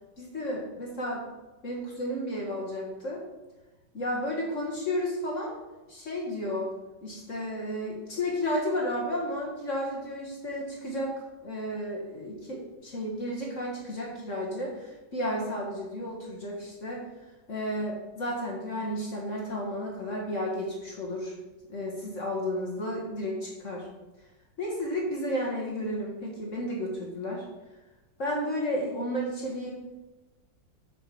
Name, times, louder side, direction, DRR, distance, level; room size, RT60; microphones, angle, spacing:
voice 1, 0.2-1.3 1.6-3.2 3.9-5.5 5.9-6.7 7.0-11.1 11.4-17.0 17.5-21.3 21.7-23.9 24.6-27.4 28.2-29.7, equal, 45° left, -3 dB, 1.7 m, -32 dB
8.5 x 5.2 x 4.9 m, 1.1 s
omnidirectional pair, 2.0 m